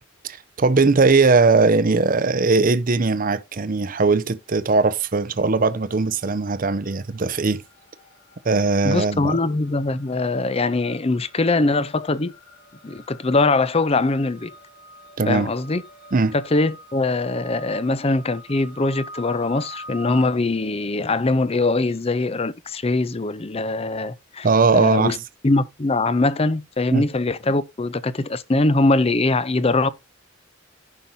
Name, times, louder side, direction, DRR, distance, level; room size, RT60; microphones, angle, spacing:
voice 1, 0.2-7.6 8.4-9.3 15.2-15.5 16.1-16.3 24.4-25.2 26.9-27.1, right 4 dB, 40° right, 0.6 m, -19 dB
sound 1, 4.5-5.1 5.4-22.0, equal, 45° left, 5.1 m, -46 dB
voice 2, 8.8-12.3 12.8-14.5 15.3-15.8 16.3-24.5 24.7-25.2 25.4-29.9, left 2 dB, 30° left, 0.6 m, -22 dB
14.5 x 5.4 x 2.7 m
head